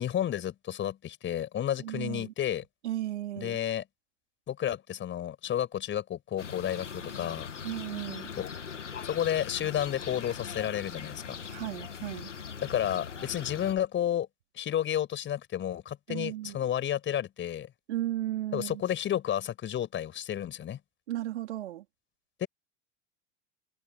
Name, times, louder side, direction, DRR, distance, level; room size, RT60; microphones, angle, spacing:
voice 1, 0.0-2.6 3.4-3.8 4.5-7.5 8.4-8.5 9.0-11.4 12.6-14.3 14.5-17.7 18.5-20.8 22.4-22.5, left 10 dB, 35° left, 5.9 m, -31 dB
voice 2, 1.8-2.3 2.8-3.6 7.6-8.3 11.5-12.3 16.1-16.6 17.9-18.8 21.1-21.8, right 14 dB, 70° right, 4.0 m, -35 dB
sound 1, 6.4-13.8, left 6 dB, 90° left, 2.0 m, -41 dB
hypercardioid pair, 90°, 35 cm